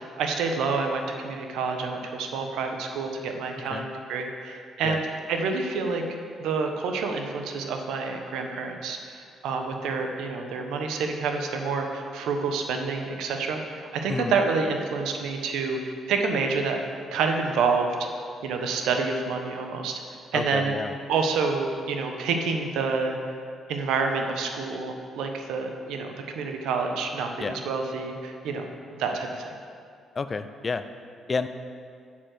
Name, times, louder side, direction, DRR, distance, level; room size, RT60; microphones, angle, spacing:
voice 1, 0.0-5.0 5.3-6.0 6.4-15.8 16.1-16.8 17.1-17.9 18.4-20.0 20.3-20.7 21.1-23.2 23.7-28.6 29.0-29.5, right 4 dB, 85° right, 4 dB, 1.0 m, -28 dB
voice 2, 20.3-21.0 27.4-27.6 30.2-30.8 31.3-31.5, left 4 dB, 35° left, 11 dB, 0.5 m, -30 dB
7.4 x 6.7 x 7.7 m, 2.2 s
cardioid pair, 90°, 0 cm